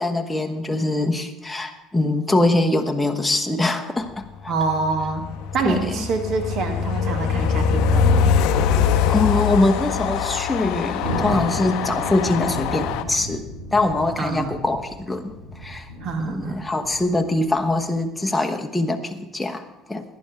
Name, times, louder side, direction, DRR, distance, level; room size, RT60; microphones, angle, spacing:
voice 1, 0.0-4.5 5.6-6.0 9.1-13.4 13.7-15.3 15.6-15.9 16.2-20.0, left 2 dB, 5° left, 4 dB, 1.1 m, -23 dB
voice 2, 4.5-5.2 5.5-8.3 14.2-14.6 16.0-16.7, right 4 dB, 45° right, 7 dB, 1.9 m, -26 dB
Train, 4.6-13.0, left 6 dB, 55° left, 0.8 m, -23 dB
Thunder, 11.0-17.9, equal, 75° right, 5.7 m, -33 dB
18.0 x 10.5 x 3.5 m, 0.99 s
figure-of-eight pair, 60°, 0 cm